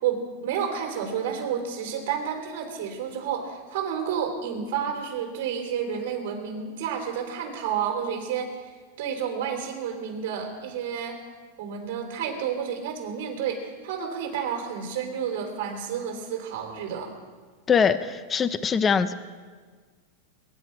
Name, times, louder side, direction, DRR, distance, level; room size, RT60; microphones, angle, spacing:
voice 1, 0.0-8.7 9.0-11.2 11.6-17.1, right 7 dB, 65° right, 2 dB, 3.7 m, -30 dB
voice 2, 17.7-19.1, left 6 dB, 20° left, 13 dB, 0.5 m, -22 dB
22.0 x 10.5 x 4.7 m, 1.5 s
supercardioid pair, 140°, 0 cm